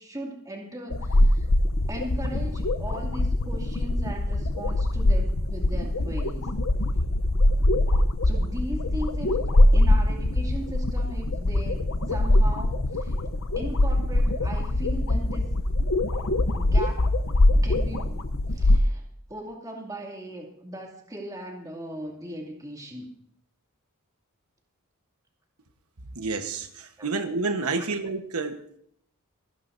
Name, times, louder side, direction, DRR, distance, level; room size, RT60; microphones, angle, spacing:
voice 1, 0.0-1.5 1.9-6.5 8.2-9.4 9.7-13.1 13.6-15.5 16.6-17.1 17.6-18.3 18.5-19.0 19.3-23.1 27.0-27.1 27.7-27.8, right 1 dB, 15° right, 0 dB, 2.4 m, -38 dB
sound 1, 0.9-18.8, left 1 dB, 65° left, 0.8 m, -23 dB
voice 2, 26.1-28.8, right 3 dB, 75° right, 6 dB, 1.2 m, -29 dB
27.5 x 11.5 x 2.7 m, 0.68 s
head